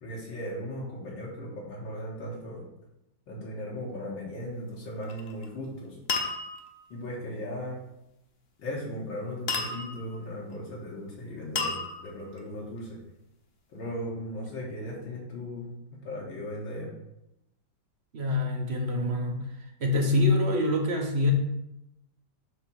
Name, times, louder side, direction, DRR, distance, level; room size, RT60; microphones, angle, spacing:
voice 1, 0.0-2.6 3.3-6.0 6.9-7.8 8.6-12.9 13.7-15.7 16.0-16.9, equal, 80° left, -4 dB, 2.2 m, -37 dB
sound 1, 5.0-5.5 6.1-6.8 9.5-10.2 11.6-12.4, left 4 dB, 50° left, 0.7 m, -32 dB
voice 2, 18.1-19.5 19.8-21.3, left 2 dB, 55° right, 1 dB, 0.7 m, -25 dB
7.8 x 3.0 x 6.0 m, 0.86 s
omnidirectional pair, 2.1 m